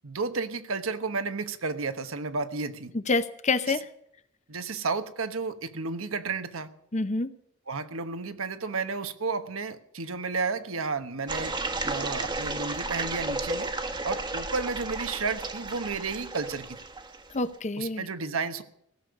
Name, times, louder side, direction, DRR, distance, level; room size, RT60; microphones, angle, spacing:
voice 1, 0.0-2.9 3.7-3.8 4.5-6.7 7.7-11.5 11.8-13.7 14.0-16.7 17.8-18.6, right 4 dB, 85° right, 10 dB, 1.2 m, -32 dB
voice 2, 2.9-3.9 6.9-7.3 17.3-18.1, left 3 dB, 35° left, 12 dB, 0.8 m, -27 dB
sound 1, 11.3-17.4, right 2 dB, 20° right, 1.2 m, -33 dB
16.5 x 7.0 x 9.3 m, 0.71 s
head